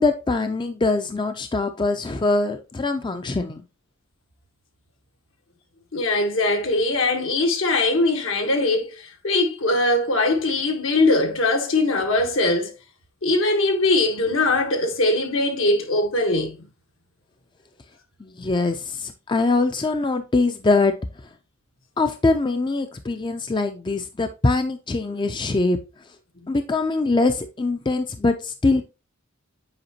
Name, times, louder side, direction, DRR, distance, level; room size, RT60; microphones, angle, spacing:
voice 1, 0.0-3.6 18.2-20.9 22.0-25.8 26.5-28.8, left 3 dB, 25° left, 0.4 m, -23 dB
voice 2, 5.9-12.7 13.2-16.7, left 2 dB, 75° left, 1.4 m, -21 dB
7.9 x 4.9 x 2.8 m
head